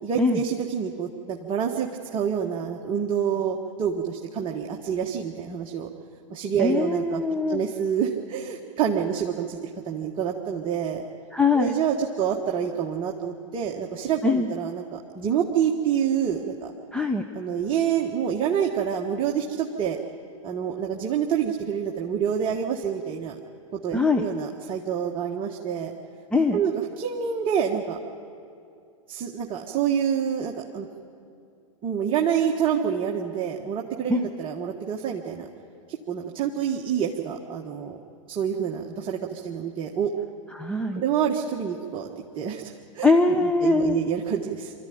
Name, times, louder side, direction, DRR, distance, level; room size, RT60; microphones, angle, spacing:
voice 1, 0.0-5.9 6.3-7.2 7.5-11.0 11.5-16.7 17.3-20.0 20.4-23.3 23.7-25.9 26.5-26.7 27.0-28.0 29.1-30.9 31.8-35.5 36.1-38.0 38.3-40.1 41.0-42.1 42.3-43.1 43.6-44.7, right 8 dB, 30° right, 0 dB, 1.5 m, -27 dB
voice 2, 6.6-7.7 11.3-11.8 14.2-14.5 16.9-17.2 23.9-24.2 26.3-26.6 34.1-34.3 40.5-41.0 43.0-44.0, left 3 dB, 5° left, 5 dB, 0.9 m, -22 dB
25.0 x 14.0 x 9.5 m, 2.5 s
hypercardioid pair, 115°, 17 cm